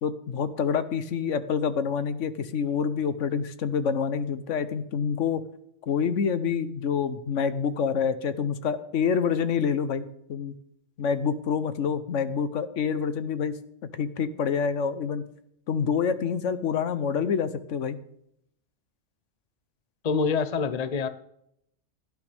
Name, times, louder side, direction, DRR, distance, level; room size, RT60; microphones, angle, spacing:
voice 1, 0.0-5.4 5.9-10.5 11.0-13.6 13.9-15.2 15.7-18.0, left 6 dB, 80° left, 12 dB, 1.2 m, -27 dB
voice 2, 20.0-21.1, left 5 dB, 40° left, 12 dB, 0.8 m, -26 dB
17.0 x 11.5 x 3.5 m, 0.74 s
omnidirectional pair, 1.2 m